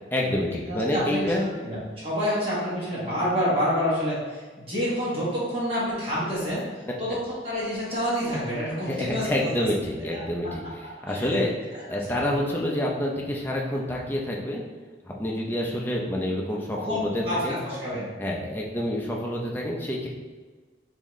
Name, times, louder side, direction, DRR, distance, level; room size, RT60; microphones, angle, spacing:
voice 1, 0.1-1.5 8.9-11.5 11.9-14.6 15.0-17.6 18.2-20.1, left 1 dB, 10° left, -2 dB, 0.5 m, -28 dB
voice 2, 0.7-1.3 1.6-6.6 7.0-7.2 7.4-9.7 10.1-10.2 11.1-11.4 11.9-12.0 16.7-18.1, equal, 30° right, -9 dB, 1.4 m, -28 dB
4.0 x 3.6 x 3.1 m, 1.4 s
head